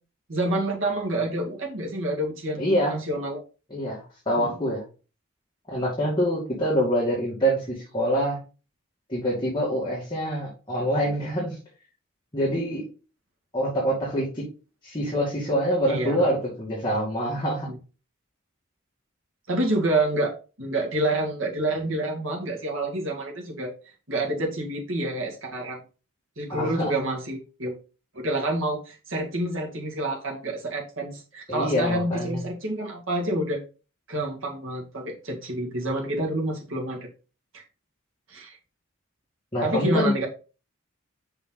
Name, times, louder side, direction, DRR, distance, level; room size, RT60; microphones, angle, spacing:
voice 1, 0.3-2.6 2.9-3.4 4.4-4.6 15.9-16.3 17.7-17.8 19.5-23.7 24.1-25.8 26.4-27.8 28.1-33.6 34.1-37.1 37.5-37.6 38.3-38.6 39.6-40.3, right 1 dB, 65° right, -1 dB, 2.1 m, -28 dB
voice 2, 2.6-3.0 3.7-4.8 5.7-8.4 9.1-11.6 12.3-12.8 13.5-14.5 14.8-17.7 26.5-26.9 31.5-32.4 39.5-40.1, equal, 20° left, -7 dB, 2.3 m, -25 dB
5.7 x 5.4 x 4.0 m, 0.34 s
head